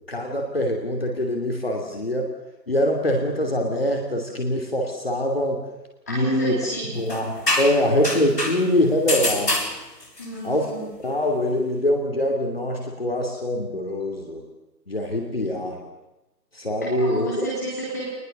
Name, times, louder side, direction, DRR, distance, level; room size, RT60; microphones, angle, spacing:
voice 1, 0.1-2.3 2.7-5.6 6.1-6.5 6.9-9.5 10.4-10.7 11.0-14.4 14.9-15.8 16.5-17.3, left 1 dB, 35° left, 1 dB, 3.0 m, -24 dB
voice 2, 6.1-7.0 10.2-10.9 16.8-18.0, right 1 dB, 10° left, -5 dB, 3.3 m, -31 dB
sound 1, 7.1-8.6 9.1-10.2, left 1 dB, 80° left, 7.9 m, -25 dB
25.0 x 20.0 x 6.7 m, 0.96 s
figure-of-eight pair, 175°, 49 cm